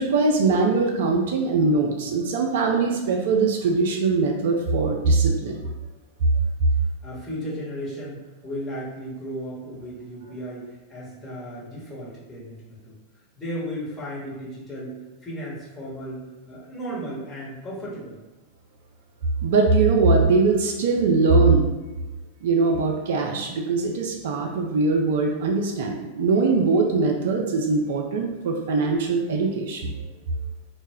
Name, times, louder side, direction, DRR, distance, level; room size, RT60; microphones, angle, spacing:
voice 1, 0.0-5.6 19.4-21.7 22.4-29.9, right 3 dB, 55° right, 1 dB, 0.3 m, -21 dB
voice 2, 7.0-12.9 13.4-18.2, equal, 15° left, -7 dB, 1.0 m, -35 dB
2.0 x 2.0 x 3.5 m, 1.1 s
figure-of-eight pair, 90°, 0 cm